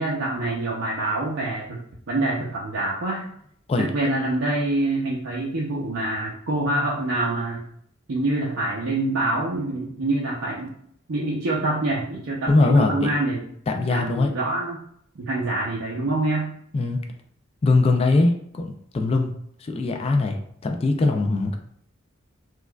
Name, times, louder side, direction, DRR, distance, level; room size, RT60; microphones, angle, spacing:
voice 1, 0.0-3.2 3.8-7.6 8.1-10.7 11.1-13.4 13.9-14.8 15.2-16.5, right 2 dB, 70° right, -5 dB, 0.6 m, -26 dB
voice 2, 12.5-13.1 13.7-14.3 16.7-17.0 17.6-19.3 19.6-21.6, left 3 dB, 30° left, 4 dB, 0.3 m, -21 dB
4.6 x 2.3 x 2.2 m, 0.68 s
head